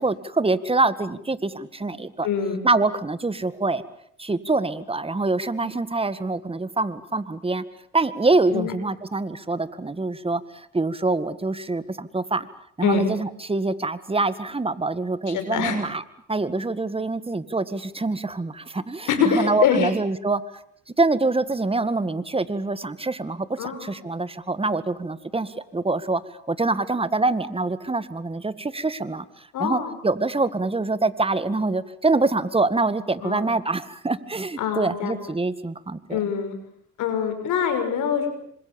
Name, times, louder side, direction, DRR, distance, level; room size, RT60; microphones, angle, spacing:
voice 1, 0.0-2.3 2.6-3.8 4.2-7.6 7.9-12.5 12.8-16.0 16.3-19.1 19.3-20.4 21.0-26.2 26.5-36.2, right 3 dB, 20° right, 13 dB, 1.9 m, -25 dB
voice 2, 2.2-2.6 5.6-5.8 8.5-8.7 12.8-13.0 15.3-15.8 19.1-19.9 23.6-24.0 29.5-30.0 33.2-33.6 34.6-35.2 36.1-36.6 37.0-38.3, left 7 dB, 85° left, 8 dB, 6.3 m, -24 dB
27.5 x 26.0 x 7.1 m, 0.67 s
cardioid pair, 90°, 30 cm